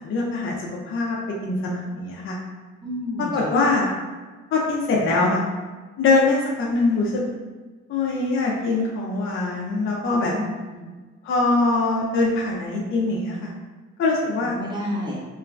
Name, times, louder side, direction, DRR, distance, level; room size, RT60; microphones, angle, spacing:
voice 1, 0.0-2.4 3.2-3.9 4.5-5.4 6.0-7.2 7.9-10.3 11.2-13.5 14.0-14.5, left 3 dB, 45° left, -3 dB, 0.5 m, -23 dB
voice 2, 2.8-3.5 10.1-10.9 14.6-15.2, left 1 dB, 15° right, -5 dB, 0.8 m, -31 dB
3.0 x 2.2 x 2.4 m, 1.3 s
cardioid pair, 90°, 30 cm